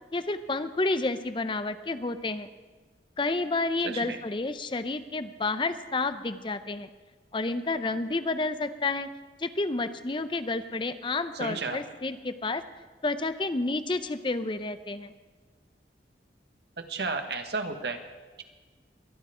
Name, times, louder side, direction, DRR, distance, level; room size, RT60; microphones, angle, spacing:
voice 1, 0.1-2.5 3.2-6.9 7.3-9.1 9.4-12.6 13.0-15.1, left 3 dB, 30° left, 11 dB, 0.5 m, -30 dB
voice 2, 3.8-4.2 11.4-11.8 16.9-18.0, right 3 dB, 75° right, 6 dB, 1.3 m, -32 dB
23.0 x 10.0 x 4.9 m, 1.3 s
head